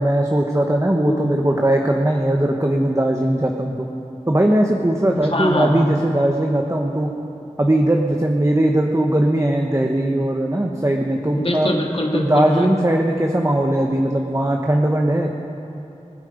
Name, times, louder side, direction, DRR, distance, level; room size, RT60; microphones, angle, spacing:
voice 1, 0.0-3.9 4.3-7.1 7.6-11.7 12.1-15.3, right 1 dB, 25° right, 1 dB, 1.1 m, -19 dB
voice 2, 1.0-1.4 5.1-5.9 11.3-12.7, left 1 dB, 50° left, -1 dB, 2.4 m, -23 dB
27.0 x 10.5 x 5.1 m, 2.9 s
wide cardioid pair, 45°, 13 cm